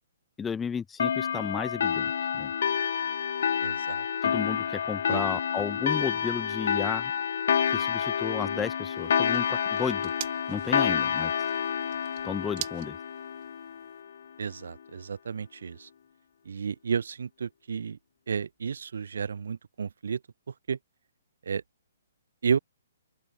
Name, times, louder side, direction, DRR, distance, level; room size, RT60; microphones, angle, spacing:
voice 1, 0.4-2.5 4.2-7.1 7.7-10.1 10.5-11.3 12.2-13.0, left 6 dB, 10° left, 1.2 m, -33 dB
sound 1, 1.0-14.1, left 8 dB, 65° left, 4.7 m, -28 dB
voice 2, 3.6-4.0 5.1-5.2 14.4-15.9 16.5-18.0 18.3-20.2 20.5-20.8 21.4-21.6 22.4-22.6, right 6 dB, 70° right, 3.8 m, -32 dB
sound 2, 8.9-14.0, right 22 dB, 40° right, 3.4 m, -45 dB
open air
hypercardioid pair, 130°, 0 cm